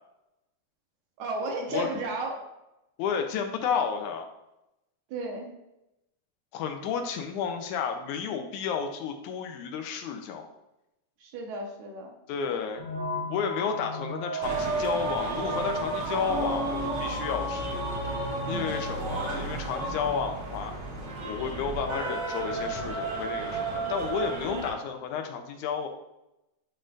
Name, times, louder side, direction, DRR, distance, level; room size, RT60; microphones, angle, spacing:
voice 1, 1.2-2.5 5.1-5.5 11.2-12.1 18.5-18.8, right 2 dB, 75° right, 1 dB, 2.3 m, -33 dB
voice 2, 3.0-4.3 6.5-10.5 12.3-12.8 13.3-17.8 18.5-20.7 21.3-25.9, left 6 dB, 85° left, 5 dB, 2.1 m, -32 dB
sound 1, 12.8-18.4, equal, 35° left, 1.4 m, -37 dB
sound 2, 14.4-24.7, right 2 dB, 60° right, 1.2 m, -32 dB
10.0 x 3.8 x 2.5 m, 0.91 s
omnidirectional pair, 3.4 m